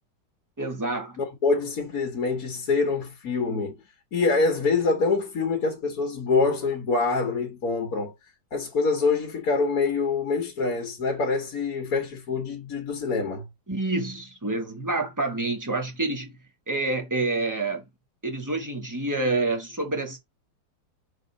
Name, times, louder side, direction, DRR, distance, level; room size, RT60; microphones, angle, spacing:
voice 1, 0.6-1.2 13.7-16.4 16.7-17.8 18.2-20.2, right 2 dB, 10° right, 1.4 m, -28 dB
voice 2, 1.2-3.8 4.1-8.1 8.5-13.4, left 4 dB, 50° left, 1.7 m, -25 dB
6.2 x 4.3 x 4.0 m
omnidirectional pair, 2.1 m